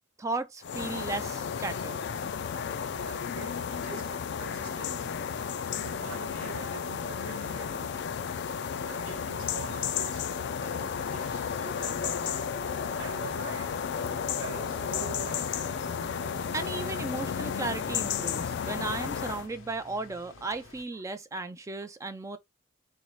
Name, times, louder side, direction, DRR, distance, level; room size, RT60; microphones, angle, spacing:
voice 1, 0.2-2.0 16.5-22.4, right 3 dB, 15° right, 0.3 m, -35 dB
sound 1, 0.6-19.5, left 7 dB, 60° left, 0.4 m, -33 dB
voice 2, 3.0-5.3 5.8-8.0 8.6-12.5 13.0-13.9 14.4-15.6, right 7 dB, 80° right, 0.5 m, -45 dB
sound 2, 9.5-20.9, left 3 dB, 80° left, 0.8 m, -54 dB
sound 3, 12.3-18.1, right 2 dB, 60° right, 0.9 m, -50 dB
3.9 x 2.6 x 3.1 m
head